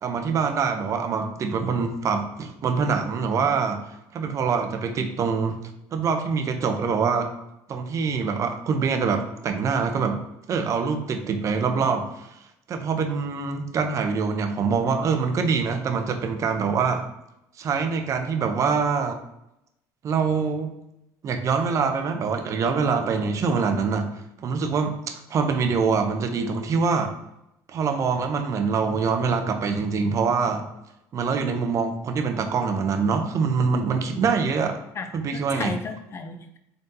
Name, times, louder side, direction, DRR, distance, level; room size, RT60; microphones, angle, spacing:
voice 1, 0.0-3.8 4.1-5.6 5.9-7.3 7.7-10.2 10.5-12.3 12.7-17.0 17.6-19.2 20.0-20.7 21.2-24.1 24.4-27.1 27.7-30.6 31.1-34.8 35.1-35.7, right 5 dB, 40° right, 5 dB, 0.6 m, -24 dB
voice 2, 34.9-36.6, left 4 dB, 35° left, 7 dB, 0.5 m, -35 dB
3.9 x 3.7 x 2.7 m, 0.86 s
cardioid pair, 115°, 8 cm